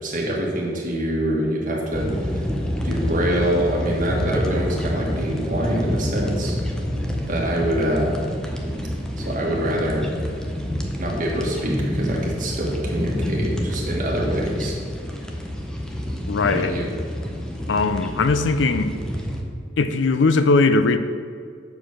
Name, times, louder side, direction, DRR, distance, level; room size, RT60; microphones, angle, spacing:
voice 1, 0.0-2.4 2.8-6.6 7.3-8.1 9.2-10.1 11.0-14.8 16.4-16.9, equal, 45° right, -2 dB, 1.6 m, -25 dB
sound 1, 1.9-19.4, equal, 5° left, 0.7 m, -28 dB
voice 2, 16.3-16.8 17.7-19.0 19.8-21.0, left 3 dB, 75° left, 11 dB, 0.5 m, -19 dB
7.1 x 4.7 x 5.9 m, 2.2 s
head